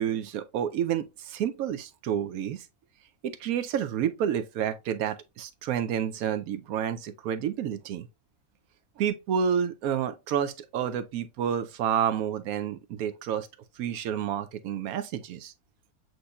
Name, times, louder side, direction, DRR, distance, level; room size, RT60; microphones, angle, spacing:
voice 1, 0.0-2.7 3.2-8.1 9.0-13.5 13.8-15.5, right 9 dB, 75° right, 1.0 m, -29 dB
7.7 x 2.7 x 2.2 m
omnidirectional pair, 1.6 m